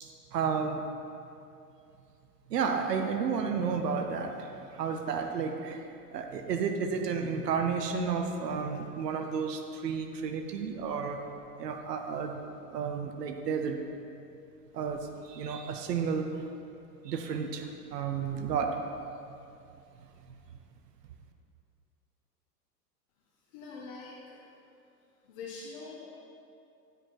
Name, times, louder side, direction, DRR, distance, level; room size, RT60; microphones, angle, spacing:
voice 1, 0.0-0.8 2.5-5.9 6.1-11.2 11.6-12.4 12.7-13.8 14.7-16.4 17.0-18.8, right 6 dB, 80° right, 5 dB, 0.9 m, -32 dB
voice 2, 23.5-24.4 25.3-26.1, left 4 dB, 50° left, -4 dB, 1.3 m, -43 dB
11.0 x 5.0 x 4.6 m, 2.6 s
hypercardioid pair, 100°, 48 cm